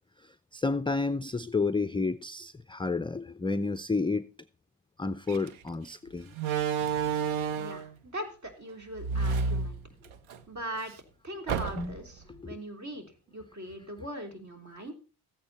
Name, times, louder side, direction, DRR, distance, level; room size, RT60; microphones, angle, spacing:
voice 1, 0.5-4.3 5.0-6.3 11.8-11.9 12.3-12.6, left 3 dB, 10° left, 0.4 m, -30 dB
Slam, 5.3-5.5 6.4-7.9 9.0-10.4 10.7-10.8 11.5-12.1, right 5 dB, 70° right, 1.1 m, -30 dB
voice 2, 7.5-9.8 10.5-10.9 11.2-14.9, equal, 35° right, 3.5 m, -40 dB
14.5 x 8.7 x 4.2 m
supercardioid pair, 70°, 50 cm